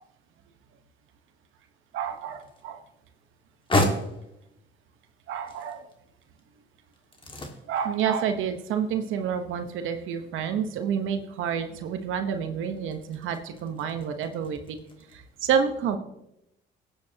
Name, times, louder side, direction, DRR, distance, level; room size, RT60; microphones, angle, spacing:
sound 1, 1.9-15.2, left 1 dB, 25° left, 2.0 m, -36 dB
voice 1, 1.9-2.8 5.3-5.9 7.6-14.8 15.1-16.0, right 7 dB, 85° right, 7 dB, 1.1 m, -29 dB
20.5 x 8.6 x 2.9 m, 0.83 s
cardioid pair, 90°, 20 cm